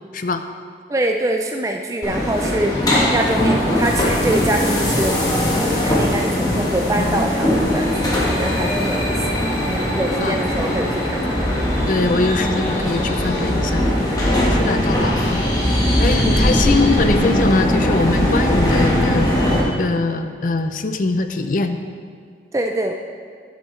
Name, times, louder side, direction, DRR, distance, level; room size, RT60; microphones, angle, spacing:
voice 1, 0.9-2.7 3.1-9.2 9.6-11.5 14.5-15.0 16.1-16.6 22.5-22.9, right 1 dB, 15° right, 3 dB, 0.3 m, -24 dB
sound 1, 2.0-19.6, left 1 dB, 20° left, 1.4 m, -19 dB
sound 2, 2.7-14.5, left 1 dB, 90° left, 2.0 m, -37 dB
voice 2, 11.9-13.9 14.5-15.4 16.0-21.8, left 3 dB, 45° left, 8 dB, 0.5 m, -22 dB
11.0 x 8.1 x 3.2 m, 2.2 s
head